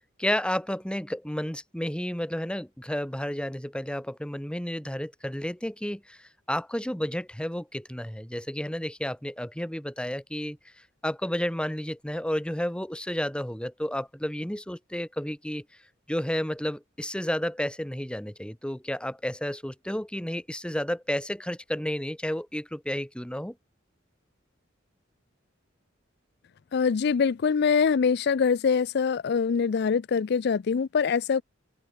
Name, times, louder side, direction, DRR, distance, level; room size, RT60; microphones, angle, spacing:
voice 1, 0.2-10.6 11.0-15.6 16.1-23.5, equal, 5° left, 1.8 m, -31 dB
voice 2, 26.7-31.4, left 6 dB, 55° left, 0.4 m, -24 dB
open air
head